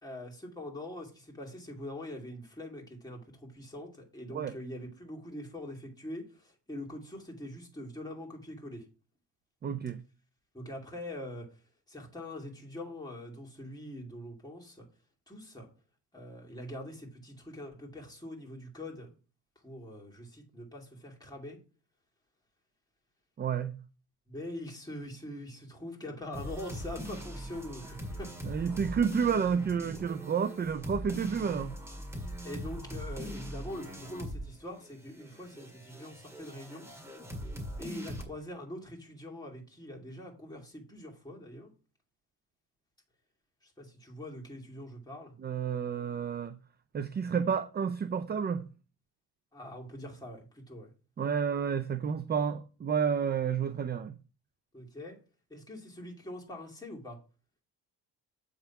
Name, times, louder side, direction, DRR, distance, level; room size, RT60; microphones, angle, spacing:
voice 1, 0.0-8.8 10.5-11.5 11.9-14.9 15.3-15.7 16.1-19.1 19.6-21.6 24.3-28.7 32.4-36.9 37.8-41.7 43.6-45.3 49.5-50.9 54.7-55.2 55.5-57.2, left 1 dB, 10° left, 2.5 m, -43 dB
voice 2, 9.6-10.0 23.4-23.8 28.5-31.8 45.4-46.6 46.9-48.6 51.2-54.2, right 7 dB, 25° right, 0.4 m, -30 dB
sound 1, 26.3-34.5 34.8-38.2, equal, 5° right, 1.9 m, -41 dB
7.8 x 3.6 x 5.8 m
cardioid pair, 100°, 43 cm